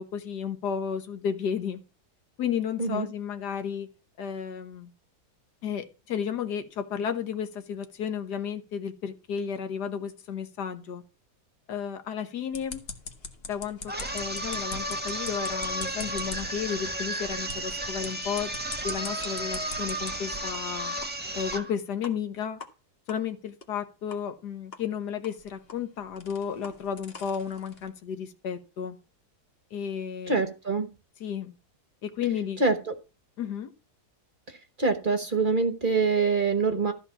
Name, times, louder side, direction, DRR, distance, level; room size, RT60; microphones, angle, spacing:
voice 1, 0.0-1.8 2.4-3.9 4.2-4.9 5.6-11.0 11.7-12.8 13.5-18.5 18.8-20.9 21.3-22.6 23.1-29.0 29.7-30.4 31.2-31.5 32.0-32.6 33.4-33.7, left 7 dB, 85° left, 1.7 m, -33 dB
sound 1, 12.5-20.1 20.5-20.6 21.0-21.1 21.5-21.6 22.0-22.1 22.6-22.7 23.1-23.2 23.6-23.7 24.1-24.2 24.7-24.8 25.2-27.9, left 3 dB, 40° left, 1.6 m, -43 dB
sound 2, 13.9-21.7, right 1 dB, 5° right, 1.2 m, -33 dB
voice 2, 30.3-30.9 32.6-32.9 34.8-36.9, right 4 dB, 35° right, 1.0 m, -25 dB
13.5 x 4.5 x 7.0 m
omnidirectional pair, 1.7 m